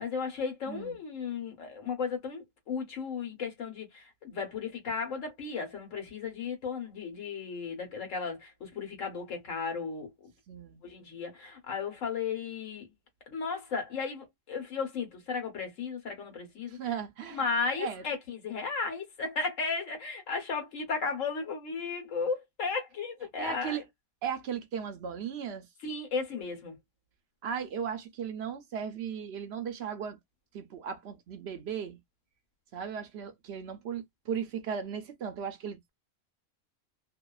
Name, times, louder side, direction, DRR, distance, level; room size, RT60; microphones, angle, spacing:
voice 1, 0.0-10.1 10.8-12.9 13.3-16.8 17.3-23.8 25.8-26.8, left 5 dB, 80° left, 1.3 m, -35 dB
voice 2, 10.5-10.8 16.7-17.4 17.7-18.0 23.4-23.9 24.2-25.7 27.4-30.2 30.5-32.0 32.7-35.9, right 7 dB, 65° right, 0.7 m, -36 dB
2.7 x 2.3 x 2.2 m
omnidirectional pair, 1.3 m